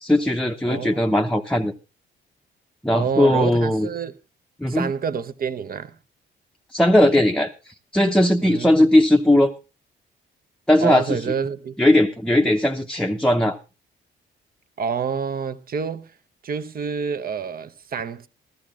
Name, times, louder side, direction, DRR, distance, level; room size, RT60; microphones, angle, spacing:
voice 1, 0.0-1.7 2.8-3.9 4.6-4.9 6.7-9.5 10.7-11.2 11.8-13.6, left 1 dB, 5° left, 0.8 m, -18 dB
voice 2, 0.7-1.0 2.9-4.1 4.7-6.0 8.4-8.9 10.8-12.0 14.8-16.1 16.4-18.3, right 6 dB, 45° right, 0.9 m, -28 dB
14.0 x 13.5 x 3.7 m
cardioid pair, 90°, 20 cm